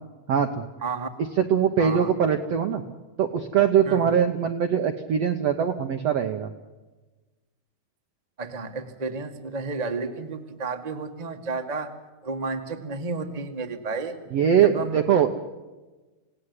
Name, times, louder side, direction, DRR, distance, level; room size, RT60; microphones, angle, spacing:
voice 1, 0.3-0.6 1.2-2.8 3.2-6.5 14.3-15.3, right 8 dB, 70° right, 6 dB, 1.5 m, -22 dB
voice 2, 1.8-2.1 3.8-4.1 8.4-11.9 12.2-14.2 14.6-15.0, right 3 dB, 35° right, 4 dB, 0.6 m, -32 dB
28.0 x 18.0 x 9.7 m, 1.2 s
omnidirectional pair, 4.5 m